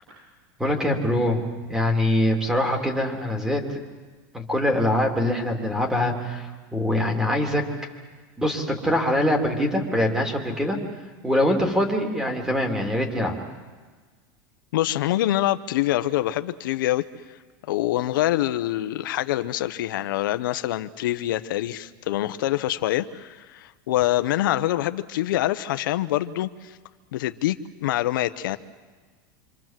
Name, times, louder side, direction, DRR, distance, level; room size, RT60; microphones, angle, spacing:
voice 1, 0.6-1.4 1.7-3.6 4.3-7.6 8.4-10.8 11.2-13.3, left 1 dB, 5° right, 3 dB, 3.3 m, -23 dB
voice 2, 14.7-17.0 17.7-26.5 27.1-28.6, left 14 dB, 90° left, 10 dB, 1.0 m, -25 dB
26.5 x 26.5 x 7.6 m, 1.4 s
supercardioid pair, 145°, 11 cm